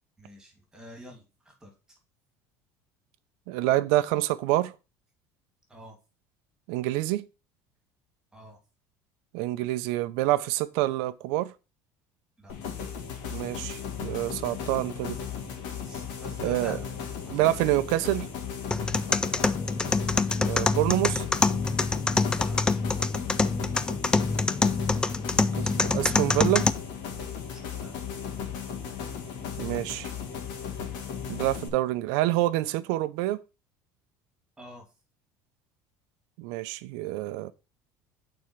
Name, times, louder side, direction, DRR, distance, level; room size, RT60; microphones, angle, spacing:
voice 1, 0.2-2.0 5.7-6.0 8.3-8.6 12.4-12.5 15.8-16.9 17.2-17.6 19.3-19.4 22.4-22.5 27.5-28.2 34.6-34.9, equal, 10° right, 2.7 m, -47 dB
voice 2, 3.5-4.7 6.7-7.2 9.3-11.5 13.3-15.2 16.4-16.8 17.3-18.3 20.4-21.2 25.3-26.7 29.6-30.1 31.3-33.4 36.4-37.5, right 16 dB, 80° right, 0.7 m, -27 dB
sound 1, 12.5-31.7, left 7 dB, 70° left, 2.0 m, -36 dB
sound 2, 18.7-26.7, left 3 dB, 10° left, 0.4 m, -25 dB
8.6 x 4.5 x 4.6 m
cardioid pair, 155°, 8 cm